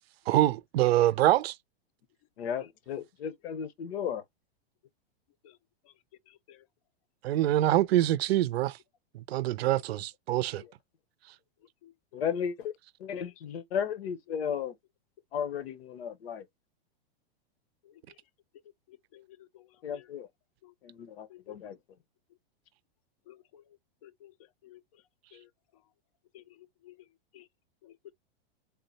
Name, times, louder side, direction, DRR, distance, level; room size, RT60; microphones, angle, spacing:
voice 1, 0.3-1.5 7.2-8.8 9.3-10.6, right 14 dB, 80° right, 0.5 m, -25 dB
voice 2, 2.4-4.2 12.1-12.7 13.0-14.8 15.3-16.4 19.8-20.3 20.8-21.8, left 8 dB, 80° left, 0.9 m, -34 dB
voice 3, 11.8-12.2 13.2-13.3 19.1-19.3 19.5-19.7 19.9-20.0 20.6-20.7 21.3-21.5 23.3-23.6 24.0-24.3 24.6-24.8 25.3-25.5 26.3-26.4 26.8-26.9 27.3-27.4 27.8-28.1, left 13 dB, 35° left, 0.4 m, -53 dB
3.7 x 2.1 x 3.9 m
supercardioid pair, 165°, 30 cm